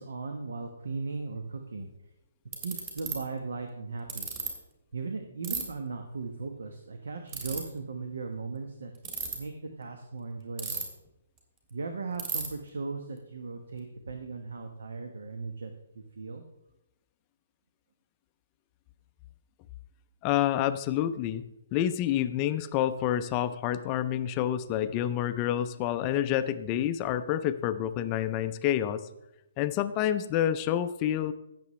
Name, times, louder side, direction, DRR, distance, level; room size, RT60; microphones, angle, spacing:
voice 1, 0.0-1.9 2.6-4.3 4.9-9.5 9.8-10.8 11.7-15.7 15.9-16.4, right 4 dB, 85° right, 5 dB, 1.1 m, -37 dB
Ratchet pawl, 1.8-1.9 2.5-3.1 4.1-4.5 5.4-5.6 7.3-7.6 8.9-9.3 10.6-11.1 11.4-11.5 11.7-11.8 12.2-12.5, right 5 dB, 25° right, 1.9 m, -33 dB
voice 2, 20.2-21.4 21.7-29.1 29.6-31.3, left 11 dB, 20° left, 11 dB, 0.4 m, -28 dB
15.5 x 6.8 x 3.2 m, 0.89 s
hypercardioid pair, 170°, 0 cm